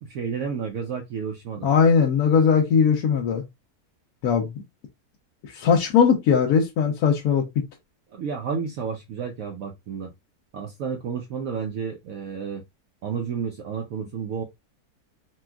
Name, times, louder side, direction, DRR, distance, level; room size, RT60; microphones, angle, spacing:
voice 1, 0.0-1.7 8.1-10.1 10.5-12.6 13.0-14.4, right 6 dB, 70° right, 0.9 m, -31 dB
voice 2, 1.6-3.4 4.2-4.6 5.5-7.5, left 6 dB, 75° left, 1.1 m, -19 dB
4.2 x 2.3 x 2.2 m
omnidirectional pair, 1.7 m